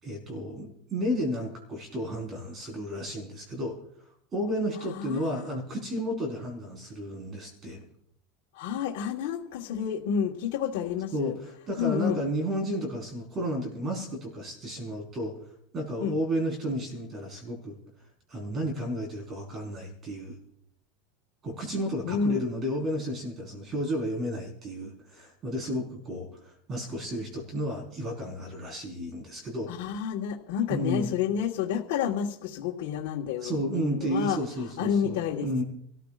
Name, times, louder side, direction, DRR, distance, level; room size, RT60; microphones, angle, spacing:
voice 1, 0.0-3.7 4.3-7.8 11.1-15.3 15.7-17.7 18.3-20.4 21.4-29.7 30.7-31.1 33.4-35.6, equal, 30° right, 1 dB, 4.5 m, -32 dB
voice 2, 4.9-5.5 8.5-11.3 11.8-12.2 16.0-16.2 22.0-22.4 29.7-34.4 34.8-35.6, left 8 dB, 65° left, -2 dB, 1.6 m, -29 dB
26.5 x 14.5 x 2.5 m, 0.67 s
supercardioid pair, 135°, 0 cm